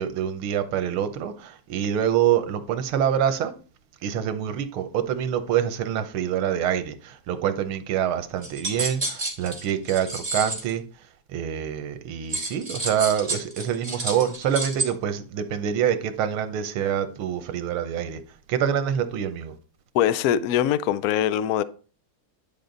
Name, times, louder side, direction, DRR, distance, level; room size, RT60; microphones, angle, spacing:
voice 1, 0.0-3.5 4.0-10.8 11.3-18.2 18.5-19.5, right 9 dB, 90° right, 1.8 m, -26 dB
sound 1, 8.4-10.7 12.3-14.9, right 2 dB, 20° right, 2.7 m, -30 dB
voice 2, 19.9-21.6, left 10 dB, 80° left, 0.8 m, -22 dB
10.5 x 5.6 x 3.9 m
omnidirectional pair, 2.3 m